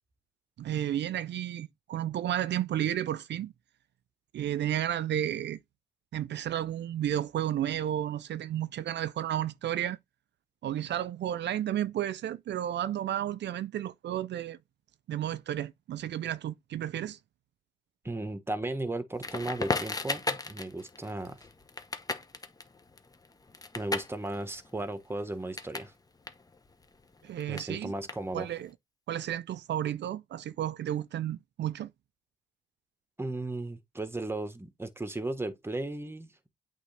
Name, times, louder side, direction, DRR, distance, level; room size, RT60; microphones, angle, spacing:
voice 1, 0.6-3.5 4.3-5.6 6.1-10.0 10.6-14.6 15.1-17.2 27.2-27.9 28.3-28.7 29.1-31.9, right 11 dB, 60° right, 0.6 m, -32 dB
voice 2, 18.0-21.4 23.7-25.9 27.5-28.5 33.2-36.3, right 2 dB, 10° right, 1.3 m, -35 dB
Crackle, 19.2-25.9 26.2-28.6, left 3 dB, 20° left, 1.1 m, -36 dB
8.3 x 3.7 x 3.4 m
cardioid pair, 90°, 20 cm